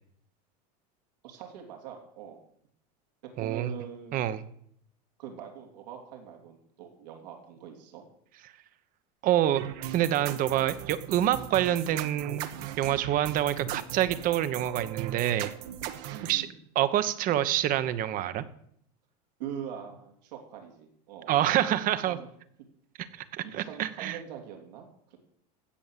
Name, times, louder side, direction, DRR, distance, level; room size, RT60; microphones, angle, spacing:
voice 1, 1.2-2.4 3.2-4.2 5.2-8.0 12.8-13.1 16.1-16.6 19.4-21.3 22.0-22.3 23.4-25.2, right 8 dB, 85° right, 3 dB, 3.2 m, -43 dB
voice 2, 3.4-3.7 4.1-4.4 9.2-9.6 9.9-12.5 12.8-15.5 16.3-16.5 16.7-18.4 21.3-22.2 23.1-24.2, right 12 dB, 40° right, 13 dB, 1.1 m, -27 dB
sound 1, 9.5-16.3, right 11 dB, 60° right, 1.3 m, -38 dB
16.0 x 6.5 x 7.5 m, 0.68 s
supercardioid pair, 130°, 21 cm